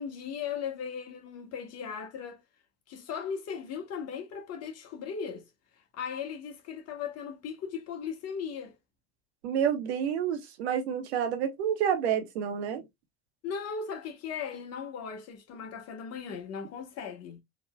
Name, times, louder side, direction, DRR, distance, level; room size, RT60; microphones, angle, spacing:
voice 1, 0.0-2.4 2.9-5.5 5.8-8.7 13.4-17.4, left 6 dB, 50° left, 1.3 m, -37 dB
voice 2, 9.4-12.8, right 8 dB, 75° right, 1.0 m, -29 dB
3.8 x 3.0 x 2.2 m
hypercardioid pair, 75°, 33 cm